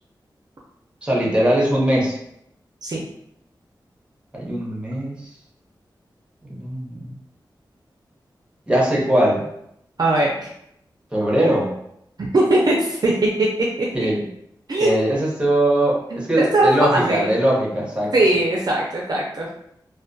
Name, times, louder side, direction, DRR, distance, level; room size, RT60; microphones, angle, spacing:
voice 1, 1.0-2.2 4.3-5.3 6.5-7.2 8.7-9.5 11.1-11.8 13.9-14.3 14.8-18.1, right 1 dB, 15° right, -3 dB, 0.8 m, -20 dB
voice 2, 10.0-10.5 12.2-13.1 13.4-13.5 13.8-13.9 14.7-14.9 16.1-17.3 18.1-19.5, right 2 dB, 55° right, -3 dB, 0.4 m, -20 dB
2.2 x 2.1 x 2.6 m, 0.76 s
wide cardioid pair, 65°, 8 cm